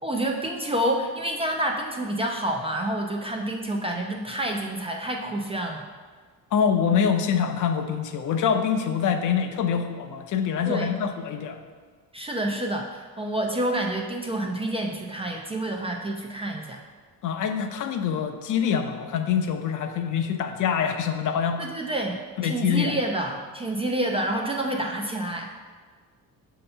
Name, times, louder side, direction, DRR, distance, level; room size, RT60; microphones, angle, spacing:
voice 1, 0.0-5.9 10.7-10.9 12.1-16.8 21.6-25.5, right 1 dB, 15° right, 1 dB, 0.3 m, -28 dB
voice 2, 6.5-11.6 17.2-21.7 22.4-22.9, left 7 dB, 60° left, 6 dB, 0.6 m, -25 dB
6.6 x 2.8 x 5.4 m, 1.5 s
cardioid pair, 155°, 35 cm